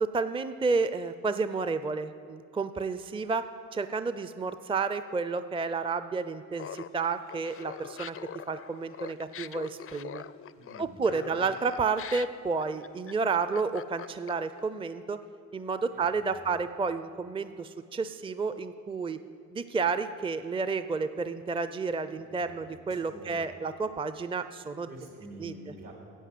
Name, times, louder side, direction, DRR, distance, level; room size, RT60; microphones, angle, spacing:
voice 1, 0.0-3.4 3.7-8.2 8.5-10.2 10.8-15.2 15.5-19.2 19.5-24.9 25.4-25.5, right 4 dB, 15° right, 11 dB, 0.5 m, -31 dB
Laughter, 6.5-14.6, left 9 dB, 45° left, 0.4 m, -43 dB
voice 2, 10.5-11.5 15.9-16.5 22.1-23.5 24.9-25.9, right 1 dB, 80° right, -1 dB, 3.6 m, -48 dB
11.0 x 7.9 x 7.7 m, 2.4 s
cardioid pair, 65°, 33 cm